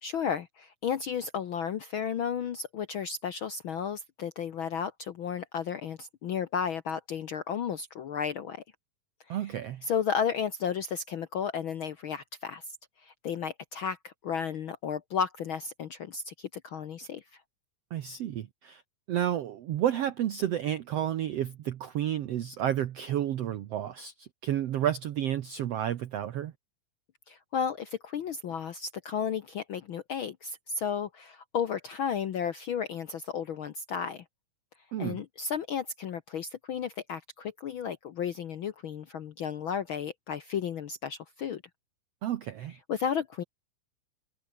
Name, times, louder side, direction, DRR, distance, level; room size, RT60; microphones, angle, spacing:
voice 1, 0.0-8.6 9.3-9.5 9.8-12.6 13.0-17.2 27.3-34.2 35.0-41.6 42.9-43.4, left 7 dB, 85° left, 1.1 m, -33 dB
voice 2, 9.3-9.8 17.9-18.8 19.1-26.5 34.9-35.2 42.2-42.8, right 11 dB, 65° right, 1.7 m, -31 dB
omnidirectional pair, 3.8 m